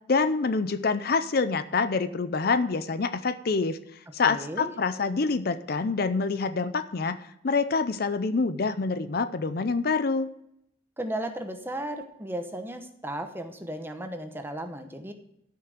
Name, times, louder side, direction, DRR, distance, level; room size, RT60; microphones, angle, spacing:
voice 1, 0.1-3.8 4.1-7.2 7.4-10.3, left 4 dB, 55° left, 13 dB, 0.5 m, -26 dB
voice 2, 4.2-4.7 11.0-15.1, right 1 dB, 10° right, 6 dB, 0.9 m, -35 dB
13.0 x 5.7 x 6.5 m, 0.76 s
head